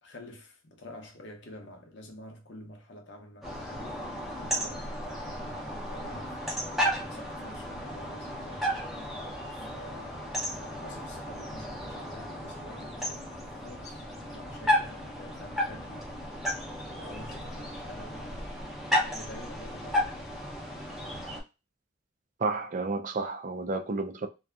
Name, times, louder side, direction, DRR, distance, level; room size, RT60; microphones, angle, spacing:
voice 1, 0.0-6.7 7.1-9.0 9.5-16.5 16.8-18.6 19.0-20.4, left 1 dB, 65° left, 0.7 m, -49 dB
sound 1, 3.4-21.4, equal, ahead, 0.7 m, -34 dB
voice 2, 22.4-24.3, right 3 dB, 40° right, 0.4 m, -31 dB
2.6 x 2.3 x 2.3 m
head